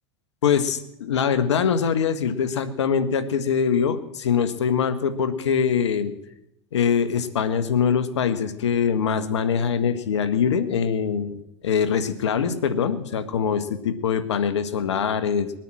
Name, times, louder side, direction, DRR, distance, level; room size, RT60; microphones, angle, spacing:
voice 1, 0.4-6.1 6.7-11.4 11.6-15.5, left 7 dB, 85° left, 12 dB, 1.4 m, -23 dB
21.0 x 9.2 x 7.6 m, 0.85 s
hypercardioid pair, 95°, 14 cm